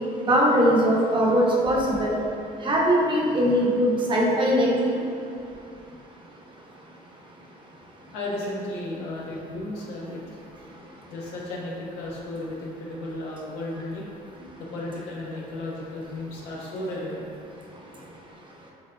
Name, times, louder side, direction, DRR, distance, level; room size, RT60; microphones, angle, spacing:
voice 1, 0.2-2.2 2.6-5.0, equal, 30° right, -3 dB, 0.9 m, -21 dB
voice 2, 8.1-10.4 11.1-14.0 14.6-17.3, left 1 dB, 90° left, -4 dB, 1.0 m, -34 dB
6.1 x 3.8 x 2.2 m, 2.6 s
cardioid pair, 110°, 17 cm